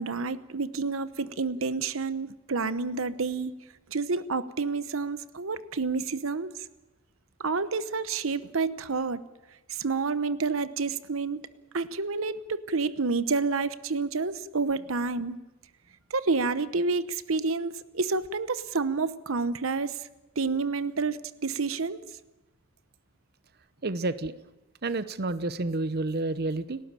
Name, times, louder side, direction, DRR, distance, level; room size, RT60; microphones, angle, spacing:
voice 1, 0.0-3.6 3.9-6.7 7.4-9.2 9.7-11.4 11.7-15.4 16.1-20.1 20.4-22.0, right 4 dB, 80° right, 14 dB, 1.0 m, -29 dB
voice 2, 23.8-24.4 24.8-26.8, right 2 dB, 50° right, 13 dB, 0.9 m, -29 dB
30.0 x 12.5 x 8.9 m, 1.0 s
head